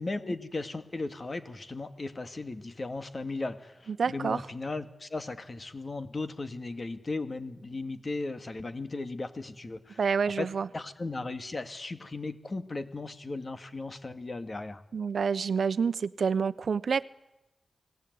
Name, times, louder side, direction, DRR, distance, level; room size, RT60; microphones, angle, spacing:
voice 1, 0.0-10.0 10.4-14.8, left 3 dB, 40° left, 11 dB, 2.2 m, -36 dB
voice 2, 4.0-4.4 10.0-10.7 14.9-17.0, right 6 dB, 70° right, 15 dB, 0.9 m, -28 dB
29.5 x 19.5 x 9.5 m, 0.98 s
wide cardioid pair, 85°, 0 cm